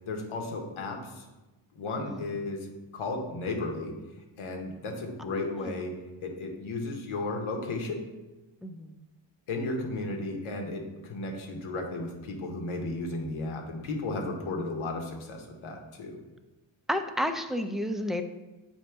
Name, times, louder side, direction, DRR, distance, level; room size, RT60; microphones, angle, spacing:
voice 1, 0.1-1.3 1.7-3.9 4.4-8.0 9.5-16.2, left 2 dB, 85° left, 2 dB, 1.1 m, -34 dB
voice 2, 5.3-5.7 8.6-8.9 16.9-18.2, equal, ahead, 7 dB, 0.4 m, -31 dB
7.2 x 2.9 x 4.4 m, 1.1 s
cardioid pair, 65°, 48 cm